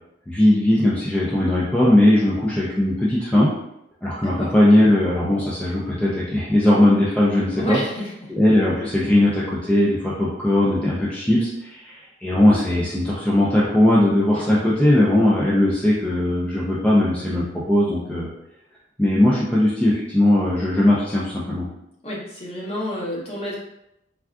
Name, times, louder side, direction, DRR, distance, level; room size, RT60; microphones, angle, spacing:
voice 1, 0.3-3.5 4.0-7.8 8.3-18.3 19.0-21.7, left 1 dB, 5° left, -6 dB, 0.4 m, -19 dB
voice 2, 7.5-8.3 14.3-14.6 19.3-19.4 22.0-23.5, left 1 dB, 35° left, -4 dB, 0.8 m, -30 dB
3.4 x 2.3 x 2.3 m, 0.82 s
head